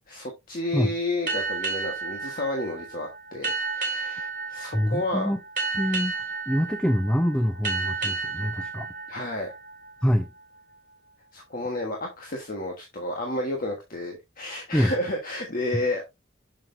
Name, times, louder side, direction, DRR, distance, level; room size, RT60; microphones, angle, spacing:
voice 1, 0.1-5.3 9.1-9.5 11.3-16.0, left 1 dB, 40° left, 1.4 m, -31 dB
sound 1, 1.3-10.4, right 4 dB, 40° right, 2.5 m, -32 dB
voice 2, 4.7-5.4 5.7-6.1 6.5-8.9 10.0-10.3 14.7-14.9, equal, 5° left, 0.4 m, -25 dB
7.1 x 6.6 x 2.6 m
head